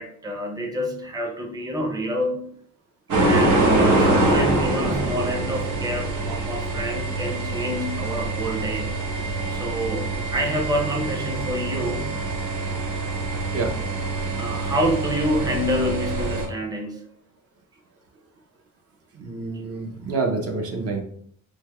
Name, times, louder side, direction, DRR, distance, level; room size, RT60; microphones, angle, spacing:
voice 1, 0.0-2.5 3.1-8.9 9.5-12.3 14.4-17.0, equal, 15° right, 1 dB, 0.6 m, -28 dB
sound 1, 3.1-16.5, right 2 dB, 85° right, 1.0 m, -24 dB
voice 2, 19.1-21.0, right 3 dB, 50° right, 3 dB, 0.6 m, -27 dB
3.2 x 3.1 x 2.2 m, 0.63 s
cardioid pair, 90°, 30 cm